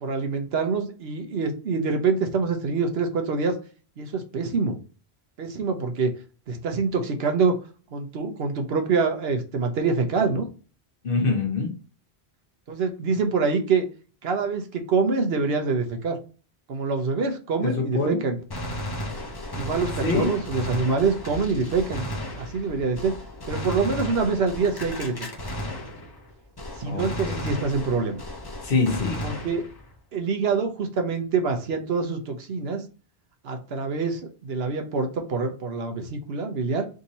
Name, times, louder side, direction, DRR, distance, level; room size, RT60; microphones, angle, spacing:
voice 1, 0.0-3.6 4.0-4.8 5.4-6.1 6.5-7.6 7.9-10.5 12.7-13.9 14.2-16.2 16.7-18.4 19.5-22.0 22.3-23.1 23.5-25.4 26.8-28.2 29.2-29.6 30.1-32.8 33.4-36.9, right 4 dB, 70° right, 1.0 m, -25 dB
voice 2, 11.0-11.7 17.6-18.2 20.0-20.4 26.9-27.5 28.6-29.2, left 3 dB, 60° left, 1.2 m, -25 dB
Gunshot gunfire, 18.5-26.3 26.6-29.9, left 1 dB, 25° left, 0.8 m, -34 dB
3.7 x 2.8 x 4.1 m
omnidirectional pair, 1.1 m